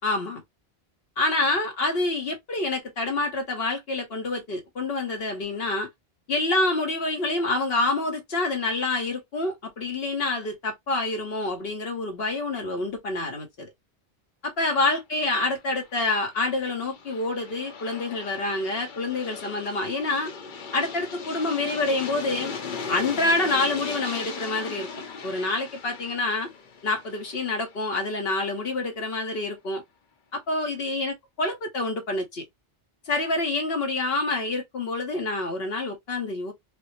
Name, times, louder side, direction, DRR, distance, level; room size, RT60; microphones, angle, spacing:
voice 1, 0.0-0.4 1.2-5.9 6.3-13.7 14.4-20.3 20.7-22.5 22.9-24.9 25.2-26.5 26.8-29.8 30.3-32.4 33.0-36.5, left 2 dB, 70° left, 1.1 m, -27 dB
Aircraft, 15.7-28.5, left 5 dB, 55° left, 0.9 m, -38 dB
4.8 x 2.0 x 3.0 m
omnidirectional pair, 1.0 m